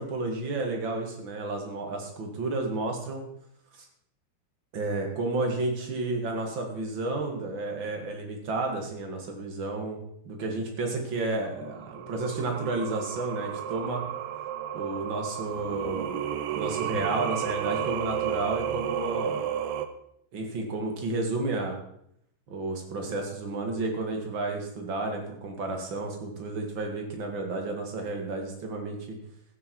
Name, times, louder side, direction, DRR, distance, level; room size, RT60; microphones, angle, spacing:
voice 1, 0.0-3.2 3.7-3.9 4.7-10.0 10.2-14.0 14.7-16.2 16.5-19.5 20.3-21.8 22.5-29.2, right 2 dB, 40° right, 2 dB, 2.0 m, -31 dB
Singing, 11.7-19.9, right 9 dB, 75° right, 2.3 m, -32 dB
14.5 x 8.6 x 4.7 m, 0.73 s
omnidirectional pair, 4.5 m